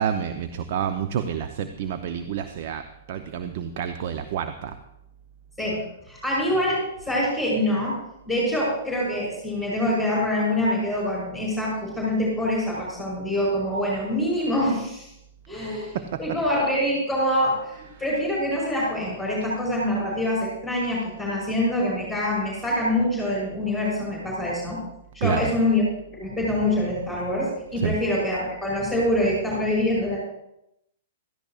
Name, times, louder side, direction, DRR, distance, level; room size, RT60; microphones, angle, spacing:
voice 1, 0.0-4.8 15.5-15.7 15.9-16.2 25.2-25.5 27.8-28.0, right 8 dB, 50° right, 8 dB, 0.7 m, -28 dB
voice 2, 5.6-8.0 8.3-15.1 15.5-24.8 25.1-25.9 26.1-30.2, left 1 dB, ahead, -5 dB, 5.4 m, -25 dB
16.5 x 14.0 x 2.5 m, 0.83 s
figure-of-eight pair, 110°, 0 cm